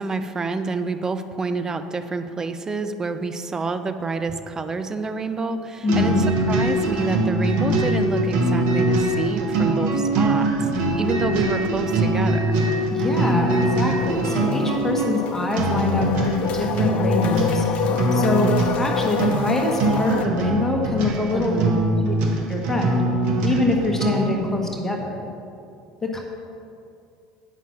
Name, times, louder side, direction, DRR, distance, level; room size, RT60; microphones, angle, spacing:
voice 1, 0.0-10.5 10.9-12.4 21.3-21.8, right 3 dB, 25° right, 9 dB, 0.6 m, -28 dB
voice 2, 5.8-6.2 12.9-17.6 18.1-21.6 22.0-22.1 22.5-23.0 23.4-25.3 26.0-26.2, left 2 dB, 15° left, 0 dB, 1.3 m, -24 dB
sound 1, 5.9-24.4, right 1 dB, 60° right, 1.3 m, -22 dB
sound 2, 11.6-11.7 12.1-20.3, left 8 dB, 50° left, 0.5 m, -29 dB
9.0 x 5.8 x 6.0 m, 2.6 s
hypercardioid pair, 70°, 3 cm